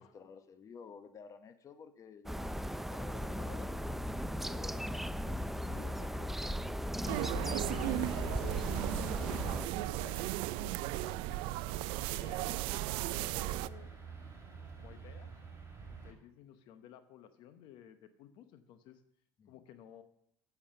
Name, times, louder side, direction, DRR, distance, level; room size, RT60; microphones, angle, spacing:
voice 1, 0.0-5.7 12.7-13.0 19.4-19.6, left 6 dB, 35° left, 10 dB, 1.0 m, -53 dB
sound 1, 2.3-9.7, equal, 5° right, 0.4 m, -37 dB
voice 2, 5.6-8.5 9.0-11.6 12.0-13.9 14.7-15.3 15.9-19.0 19.5-20.0, left 10 dB, 65° left, 10 dB, 0.9 m, -55 dB
sound 2, 7.1-13.7, right 17 dB, 70° right, 0.4 m, -36 dB
sound 3, 7.7-16.1, right 5 dB, 25° right, 5.2 m, -48 dB
8.9 x 7.2 x 6.7 m, 0.72 s
supercardioid pair, 95°, 9 cm